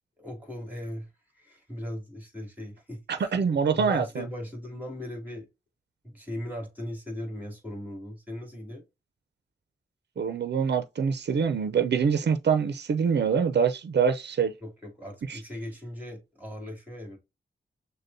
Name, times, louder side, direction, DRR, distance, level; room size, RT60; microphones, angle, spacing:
voice 1, 0.2-1.1 1.3-5.5 6.0-8.8 14.6-17.2, left 1 dB, 10° right, 2.4 m, -38 dB
voice 2, 3.1-4.3 10.2-14.5 15.3-15.4, right 6 dB, 75° right, 0.5 m, -25 dB
6.5 x 2.2 x 2.7 m
wide cardioid pair, 100°, 18 cm